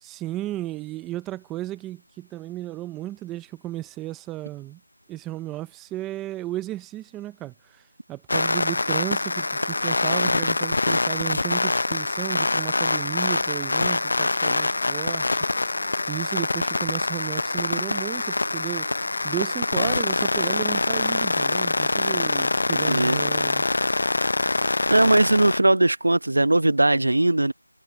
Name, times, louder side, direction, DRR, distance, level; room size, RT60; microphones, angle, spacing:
voice 1, 0.0-4.8 5.1-7.8 8.1-15.4 16.1-18.9 19.2-23.7, right 15 dB, 5° right, 0.5 m, -34 dB
sound 1, 8.3-25.6, left 2 dB, 50° left, 0.5 m, -24 dB
voice 2, 22.9-23.2 24.9-27.5, right 2 dB, 70° right, 0.9 m, -19 dB
figure-of-eight pair, 175°, 0 cm